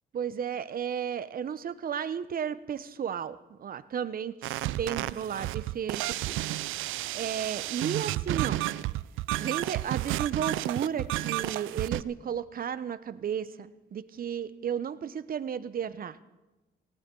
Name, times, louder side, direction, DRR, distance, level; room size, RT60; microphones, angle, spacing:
voice 1, 0.1-4.3 4.7-6.5 7.1-8.6 9.4-16.2, right 8 dB, 45° right, 15 dB, 0.8 m, -33 dB
sound 1, 4.4-12.0, right 16 dB, 85° right, 0.4 m, -31 dB
18.5 x 17.5 x 3.8 m, 1.1 s
cardioid pair, 90°, 20 cm